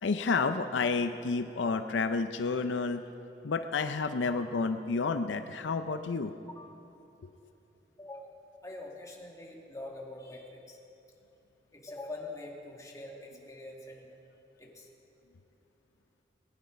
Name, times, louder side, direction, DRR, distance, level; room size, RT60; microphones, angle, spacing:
voice 1, 0.0-3.0 3.4-6.3, left 4 dB, 85° left, 9 dB, 0.5 m, -30 dB
voice 2, 8.0-10.8 11.7-14.2 14.6-14.9, left 2 dB, 20° left, -1 dB, 1.9 m, -45 dB
19.0 x 11.0 x 5.1 m, 3.0 s
head